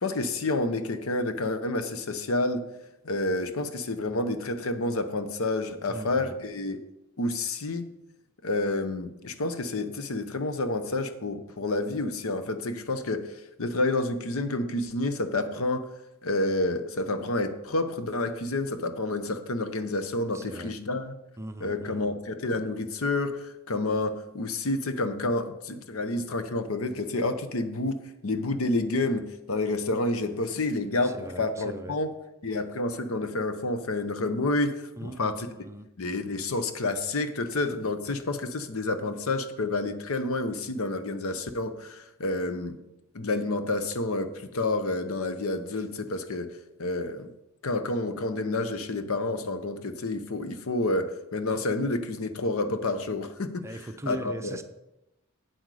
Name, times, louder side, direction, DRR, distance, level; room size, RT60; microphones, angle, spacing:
voice 1, 0.0-2.6 3.0-6.8 7.2-7.9 8.4-13.3 13.6-15.9 16.2-21.1 21.6-32.1 32.4-35.5 36.0-42.8 43.1-46.5 46.8-47.3 47.6-53.7 54.1-54.6, left 2 dB, 75° left, 10 dB, 0.8 m, -29 dB
voice 2, 5.9-6.3 20.3-20.8 21.4-22.1 31.0-32.0 35.0-35.9 53.6-54.6, right 1 dB, 15° right, 8 dB, 0.5 m, -40 dB
7.9 x 7.8 x 4.8 m, 0.91 s
head